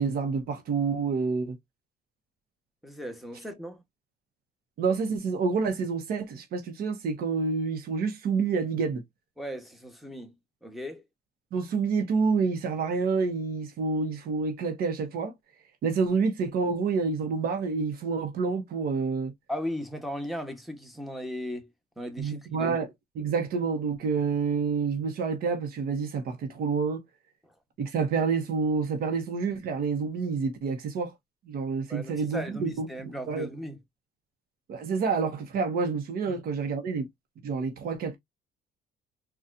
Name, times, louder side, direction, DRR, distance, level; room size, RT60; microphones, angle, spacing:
voice 1, 0.0-1.6 4.8-9.0 11.5-15.3 15.8-19.3 22.2-22.9 23.1-27.0 27.8-31.1 31.5-32.9 33.3-33.5 34.7-37.1 37.4-38.2, right 5 dB, 65° right, 1.0 m, -28 dB
voice 2, 2.8-3.8 9.4-10.3 10.6-11.0 19.5-21.7 22.0-22.7 27.4-27.5 31.9-33.8 36.3-36.4, equal, ahead, 1.0 m, -37 dB
4.1 x 2.4 x 2.5 m
cardioid pair, 110°, 17 cm